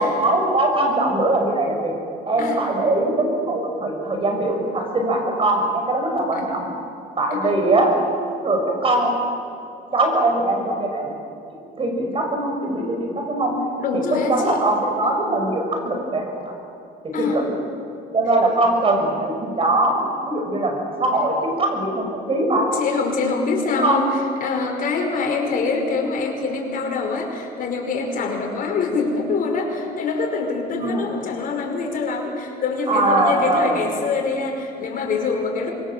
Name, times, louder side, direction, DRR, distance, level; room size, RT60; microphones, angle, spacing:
voice 1, 0.0-1.9 2.3-6.6 7.2-7.9 8.4-9.1 9.9-11.1 11.8-13.5 14.1-16.5 17.2-17.5 18.1-22.7 23.8-24.1 30.8-31.1 32.9-33.8, right 2 dB, 35° right, 2 dB, 6.4 m, -21 dB
voice 2, 13.8-14.6 15.0-15.2 17.1-17.4 22.7-35.7, left 4 dB, 55° left, 2 dB, 5.2 m, -24 dB
25.5 x 23.0 x 7.5 m, 2.7 s
cardioid pair, 110°, 17 cm